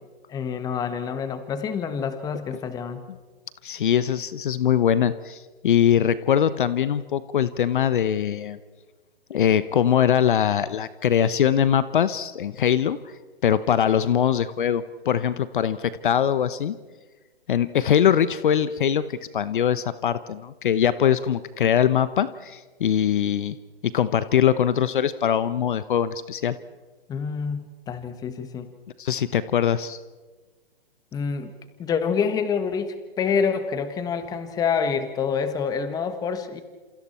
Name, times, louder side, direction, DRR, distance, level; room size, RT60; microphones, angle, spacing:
voice 1, 0.3-3.0 27.1-28.7 31.1-31.5 31.8-36.6, left 6 dB, 10° left, 10 dB, 1.4 m, -27 dB
voice 2, 3.6-8.6 9.3-13.0 13.4-16.8 17.5-23.6 23.8-26.6 29.0-30.0, left 9 dB, 55° left, 15 dB, 1.0 m, -22 dB
28.5 x 28.0 x 4.4 m, 1.4 s
hypercardioid pair, 140°, 31 cm